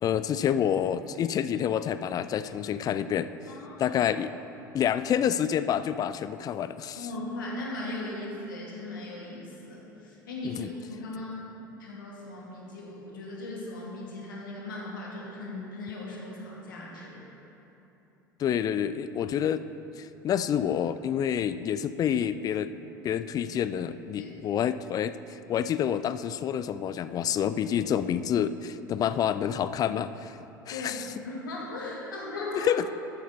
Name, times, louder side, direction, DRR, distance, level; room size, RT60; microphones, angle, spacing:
voice 1, 0.0-3.3 3.8-4.3 4.7-7.1 10.4-10.7 18.4-19.6 20.0-22.7 23.0-25.1 25.5-30.4 30.7-31.1 32.6-32.8, left 9 dB, 35° left, 13 dB, 0.4 m, -28 dB
voice 2, 3.5-4.0 7.0-11.4 11.8-17.2 24.2-24.3 30.7-32.7, left 2 dB, 75° left, -3 dB, 2.4 m, -38 dB
13.5 x 9.2 x 4.1 m, 3.0 s
figure-of-eight pair, 70°, 11 cm